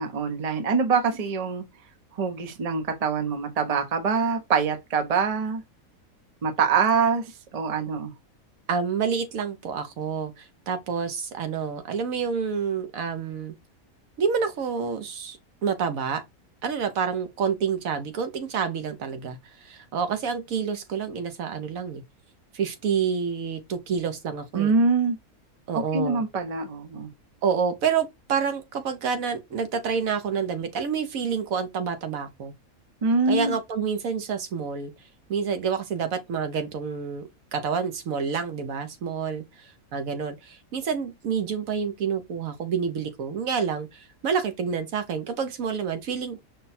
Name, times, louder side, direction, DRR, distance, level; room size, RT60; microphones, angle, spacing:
voice 1, 0.0-1.6 2.1-5.6 6.4-8.1 24.5-25.2 25.7-27.1 33.0-33.6, right 5 dB, 35° right, 0.7 m, -24 dB
voice 2, 8.7-13.5 14.2-16.2 16.6-22.0 22.5-24.8 25.7-26.2 27.4-32.5 33.3-34.9 35.3-37.2 37.5-46.4, right 6 dB, 70° right, 1.2 m, -28 dB
5.3 x 2.3 x 4.1 m
omnidirectional pair, 1.5 m